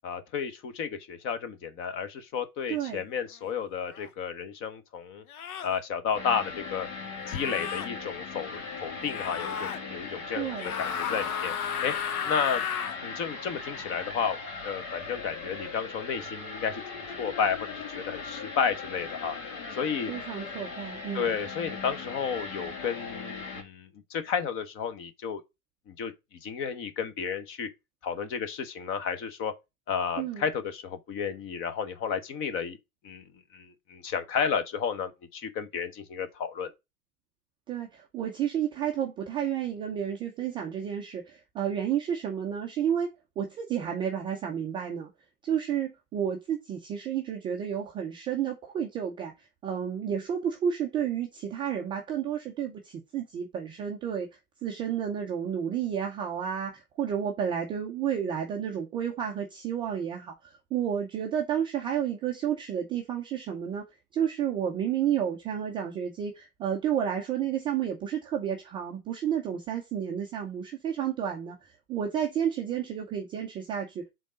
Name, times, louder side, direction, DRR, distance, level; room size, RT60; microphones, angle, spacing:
voice 1, 0.0-5.2 5.6-6.9 7.3-11.5 11.8-11.9 12.2-12.6 13.0-14.4 14.6-19.4 19.7-20.1 21.1-25.4 25.9-26.1 26.4-27.7 28.0-29.5 29.9-32.8 33.0-33.2 33.5-36.7, left 6 dB, 30° left, 1.0 m, -32 dB
voice 2, 2.7-3.0 10.3-10.7 20.1-21.3 30.2-30.4 37.7-43.1 43.4-45.1 45.4-54.3 54.6-63.8 64.1-71.6 71.9-74.1, right 9 dB, 10° right, 0.4 m, -31 dB
sound 1, 3.9-4.1 5.3-5.8 7.2-7.9 9.1-9.8 10.5-13.0, left 8 dB, 70° left, 1.0 m, -33 dB
sound 2, 6.1-23.6, left 4 dB, 55° left, 2.6 m, -39 dB
5.1 x 3.8 x 5.0 m
hypercardioid pair, 120°, 45 cm